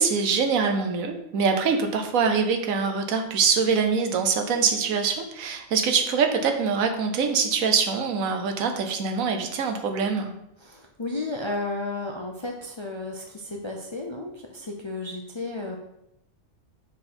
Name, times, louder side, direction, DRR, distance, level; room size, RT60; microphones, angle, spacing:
voice 1, 0.0-10.3, right 5 dB, 85° right, 5 dB, 1.3 m, -24 dB
voice 2, 10.6-15.8, left 2 dB, 35° left, 1 dB, 0.4 m, -33 dB
6.1 x 4.8 x 4.3 m, 0.82 s
omnidirectional pair, 1.4 m